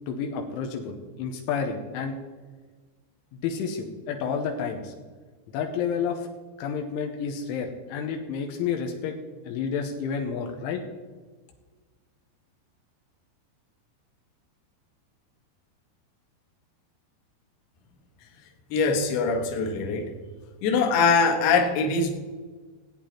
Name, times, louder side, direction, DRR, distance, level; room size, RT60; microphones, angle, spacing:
voice 1, 0.1-2.2 3.3-4.9 5.5-6.3 6.6-9.2 9.4-10.8, left 6 dB, 80° left, 4 dB, 3.3 m, -30 dB
voice 2, 18.7-20.1 20.6-22.1, left 4 dB, 65° left, 2 dB, 3.2 m, -22 dB
16.5 x 8.9 x 4.4 m, 1.4 s
omnidirectional pair, 5.5 m